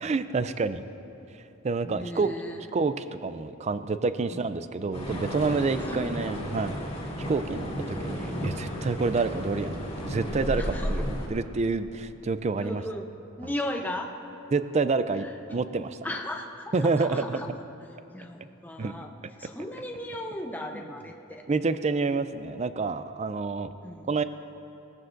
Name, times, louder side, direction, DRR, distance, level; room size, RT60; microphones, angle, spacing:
voice 1, 0.0-0.9 1.6-2.3 2.7-2.9 3.2-6.7 7.3-12.8 14.5-16.0 16.7-17.5 18.8-19.0 21.5-23.7 24.1-24.2, right 4 dB, 30° right, 12 dB, 0.4 m, -28 dB
voice 2, 1.8-2.7 4.3-4.4 5.6-6.2 7.2-7.7 9.2-9.3 10.6-11.0 12.6-13.1 13.4-14.1 15.2-15.4 16.0-17.5 18.1-19.1 19.4-21.4 23.8-24.1, left 1 dB, 10° left, 2 dB, 0.7 m, -37 dB
sound 1, 4.9-11.3, equal, 30° left, 2.1 m, -33 dB
19.0 x 14.0 x 2.6 m, 2.9 s
head